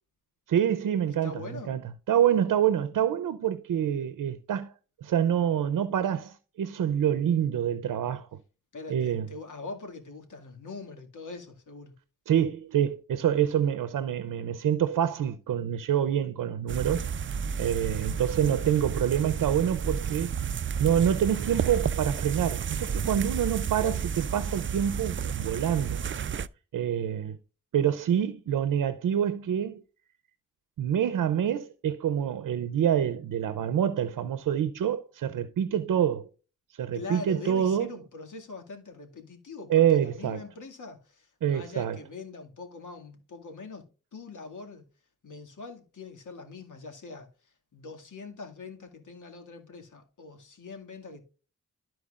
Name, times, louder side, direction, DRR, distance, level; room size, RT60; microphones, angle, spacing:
voice 1, 0.5-1.8 2.1-4.7 5.0-8.4 8.9-9.3 12.3-17.1 17.6-20.3 20.8-26.0 26.7-27.4 27.7-29.8 30.8-36.3 36.8-37.9 39.7-40.4 41.4-42.0, right 9 dB, 90° right, 0.7 m, -26 dB
voice 2, 1.2-1.7 8.7-11.9 23.8-24.0 35.7-35.8 36.9-43.8 44.1-44.8 45.2-47.3 47.7-51.2, left 3 dB, 70° left, 2.1 m, -43 dB
sound 1, 16.7-26.5, right 7 dB, 40° right, 0.4 m, -31 dB
13.5 x 4.5 x 2.4 m
cardioid pair, 55°, 31 cm